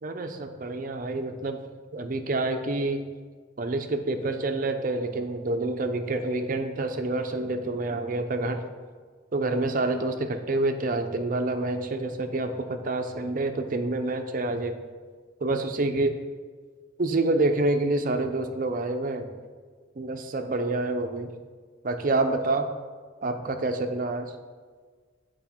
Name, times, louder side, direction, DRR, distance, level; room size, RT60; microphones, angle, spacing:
voice 1, 0.0-1.6 1.9-3.0 3.6-8.6 9.3-14.8 15.4-16.1 17.0-19.3 20.0-21.3 21.8-22.7 23.2-24.3, right 2 dB, 45° right, 7 dB, 0.6 m, -27 dB
8.2 x 4.7 x 4.4 m, 1.5 s
head